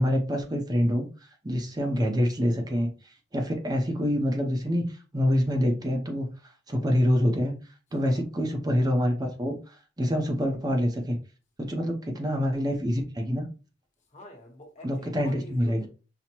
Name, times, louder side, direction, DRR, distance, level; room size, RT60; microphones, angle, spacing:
voice 1, 0.0-6.3 6.7-7.5 7.9-11.2 11.6-13.5 14.8-15.9, equal, 25° right, 0.6 m, -26 dB
voice 2, 14.1-15.9, left 1 dB, 45° left, 1.1 m, -47 dB
5.7 x 2.1 x 2.9 m
head